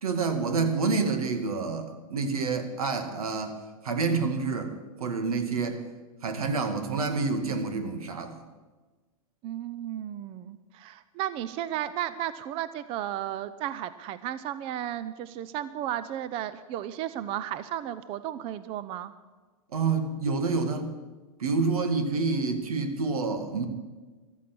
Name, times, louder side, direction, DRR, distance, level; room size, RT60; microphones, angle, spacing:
voice 1, 0.0-3.5 3.8-4.7 5.0-5.8 6.2-8.4 19.7-20.9 21.4-23.7, right 4 dB, 90° right, 8 dB, 2.1 m, -28 dB
voice 2, 9.4-19.1, right 11 dB, 30° right, 14 dB, 0.6 m, -34 dB
14.0 x 13.0 x 6.1 m, 1.3 s
hypercardioid pair, 135°, 18 cm